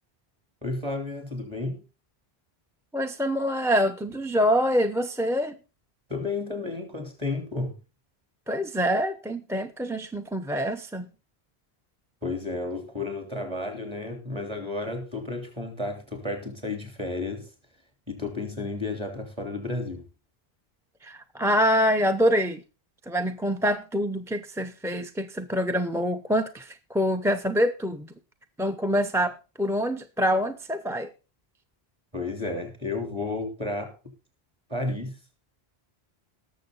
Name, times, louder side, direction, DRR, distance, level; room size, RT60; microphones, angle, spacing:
voice 1, 0.6-1.8 6.1-7.7 12.2-17.5 18.1-20.1 32.1-33.9 34.7-35.1, left 2 dB, 25° right, 3.3 m, -32 dB
voice 2, 2.9-5.6 8.5-11.1 21.0-22.6 23.1-28.1 28.6-31.1, equal, 5° right, 0.5 m, -25 dB
18.5 x 7.1 x 3.9 m
omnidirectional pair, 1.1 m